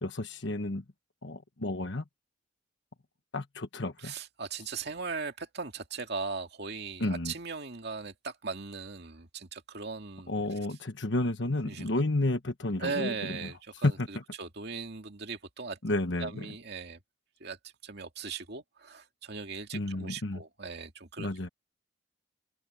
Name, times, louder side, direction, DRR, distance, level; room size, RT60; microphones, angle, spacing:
voice 1, 0.0-0.8 1.2-2.0 3.3-4.1 7.0-7.3 10.3-13.5 13.8-14.2 15.8-16.4 19.7-20.4 21.2-21.5, left 2 dB, 65° left, 1.3 m, -31 dB
voice 2, 4.0-10.3 11.6-11.9 12.8-15.8 16.2-17.0 17.4-17.6 17.8-21.5, right 4 dB, 55° right, 2.3 m, -39 dB
open air
head